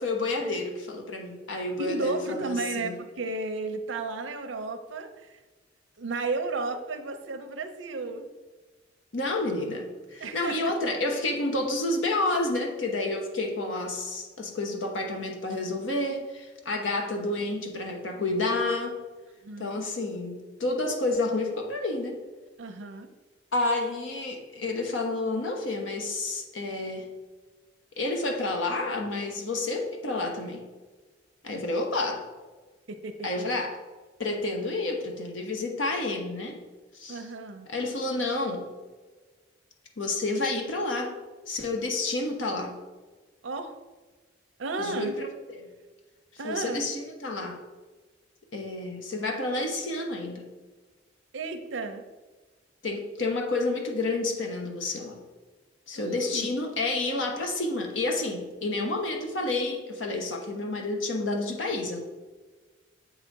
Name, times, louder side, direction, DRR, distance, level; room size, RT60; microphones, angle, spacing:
voice 1, 0.0-3.0 9.1-19.0 19.6-22.2 23.5-27.1 28.0-30.7 31.4-32.2 33.2-33.8 34.2-36.6 36.9-37.3 37.7-38.7 40.0-41.2 41.5-42.8 44.8-45.7 46.3-47.6 48.5-50.4 52.8-55.2 55.9-62.0, left 2 dB, 90° left, 3 dB, 1.1 m, -30 dB
voice 2, 1.8-5.1 6.0-8.3 10.2-10.6 19.4-19.8 22.6-23.1 32.9-33.5 37.1-37.7 43.4-43.7 44.6-45.2 46.4-46.8 51.3-52.0 55.9-56.5, right 3 dB, 75° right, 6 dB, 0.6 m, -33 dB
7.8 x 4.0 x 4.6 m, 1.3 s
head